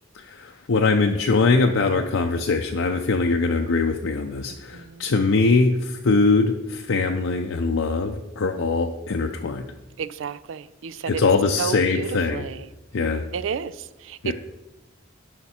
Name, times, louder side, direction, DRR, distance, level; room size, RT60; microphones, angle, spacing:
voice 1, 0.1-9.6 11.1-12.5 12.9-13.2 14.2-14.3, left 3 dB, 70° left, 3 dB, 0.6 m, -22 dB
voice 2, 4.5-5.1 10.0-11.2 11.6-12.7 13.3-14.3, right 6 dB, 70° right, 16 dB, 0.4 m, -32 dB
11.0 x 5.8 x 4.3 m, 1.0 s
head